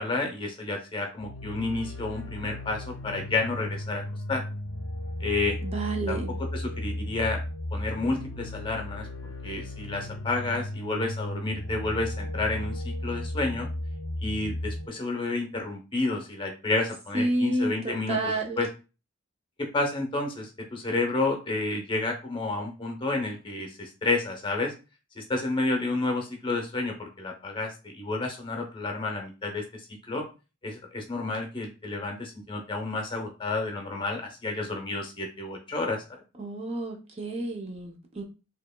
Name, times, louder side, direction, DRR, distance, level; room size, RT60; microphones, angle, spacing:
voice 1, 0.0-4.0 4.3-4.4 5.2-5.6 6.1-7.4 7.7-9.1 9.4-13.7 14.2-18.7 19.6-24.7 25.2-29.8 30.1-30.2 30.6-36.0, left 2 dB, 25° left, 3 dB, 0.7 m, -30 dB
sound 1, 1.2-14.9, left 1 dB, 65° left, 0.5 m, -35 dB
voice 2, 5.6-6.3 17.1-18.6 36.4-38.2, right 1 dB, 30° right, 2 dB, 0.6 m, -29 dB
4.5 x 2.9 x 2.2 m, 0.32 s
head